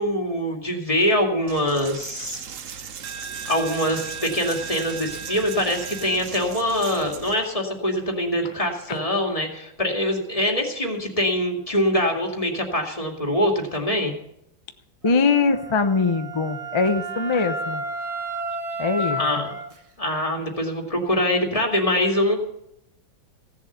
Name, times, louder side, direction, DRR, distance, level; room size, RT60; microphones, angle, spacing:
voice 1, 0.0-2.4 3.5-14.1 19.2-19.5 20.0-22.4, left 1 dB, 20° left, 1 dB, 2.2 m, -24 dB
Coin (dropping), 1.5-7.5, right 6 dB, 55° right, 1.0 m, -36 dB
voice 2, 15.0-17.8 18.8-19.5, left 4 dB, 45° left, 8 dB, 0.3 m, -22 dB
Wind instrument woodwind instrument, 15.0-19.7, right 1 dB, 25° right, 0.8 m, -31 dB
16.0 x 7.4 x 7.9 m, 0.81 s
omnidirectional pair, 2.0 m